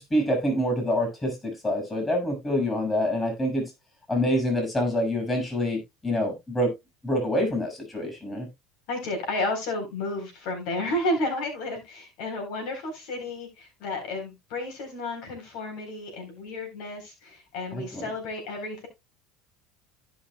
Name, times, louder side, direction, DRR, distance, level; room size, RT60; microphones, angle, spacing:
voice 1, 0.0-3.7 4.1-6.7 7.0-8.5 17.7-18.1, equal, 15° left, 5.9 m, -26 dB
voice 2, 8.9-18.9, left 2 dB, 75° left, 4.0 m, -32 dB
15.5 x 5.8 x 2.3 m
supercardioid pair, 110°, 0 cm